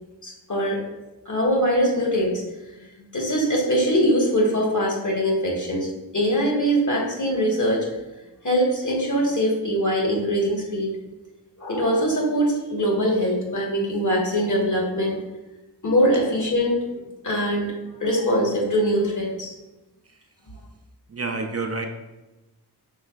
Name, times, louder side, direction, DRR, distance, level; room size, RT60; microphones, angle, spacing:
voice 1, 0.2-0.8 1.3-2.4 3.0-5.9 6.1-7.9 8.4-10.9 11.6-15.2 15.8-16.8 17.2-17.7 18.0-19.5, equal, 45° left, -1 dB, 1.3 m, -22 dB
voice 2, 21.1-21.9, right 3 dB, 40° right, 3 dB, 0.4 m, -28 dB
5.5 x 3.7 x 2.3 m, 1.0 s
cardioid pair, 45°, 41 cm